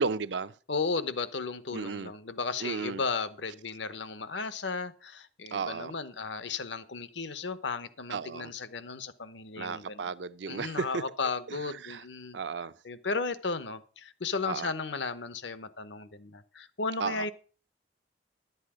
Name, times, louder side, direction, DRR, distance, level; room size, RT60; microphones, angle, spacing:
voice 1, 0.0-0.5 1.7-2.1 2.6-3.0 5.5-5.9 8.1-8.5 9.6-11.0 11.8-12.0 12.3-12.7 14.5-14.7 17.0-17.2, right 5 dB, 80° right, 0.6 m, -33 dB
voice 2, 0.7-10.1 10.5-12.4 12.8-17.3, left 4 dB, 85° left, 0.9 m, -35 dB
11.5 x 8.2 x 5.0 m
head